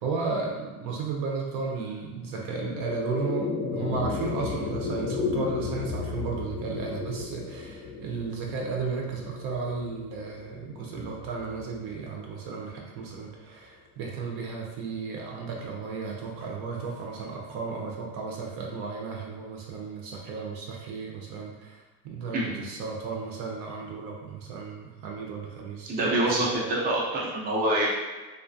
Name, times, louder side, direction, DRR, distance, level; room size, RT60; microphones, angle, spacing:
voice 1, 0.0-26.7, right 4 dB, 75° right, -1 dB, 0.7 m, -34 dB
sound 1, 2.2-12.7, left 4 dB, 55° left, 0.5 m, -34 dB
voice 2, 25.9-27.9, right 1 dB, 25° right, -4 dB, 0.4 m, -26 dB
2.3 x 2.1 x 2.5 m, 1.3 s
cardioid pair, 140°, 39 cm